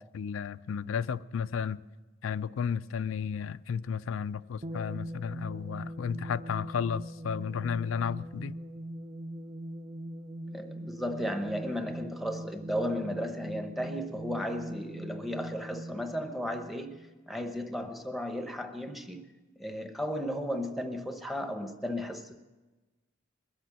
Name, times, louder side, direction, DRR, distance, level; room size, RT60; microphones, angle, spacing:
voice 1, 0.1-1.8 2.2-8.5, left 7 dB, 85° left, 0.4 m, -33 dB
sound 1, 4.6-17.4, right 1 dB, 30° right, 0.6 m, -42 dB
voice 2, 10.5-17.0 17.3-19.3 19.6-22.4, equal, ahead, 0.9 m, -35 dB
21.0 x 8.1 x 7.4 m
head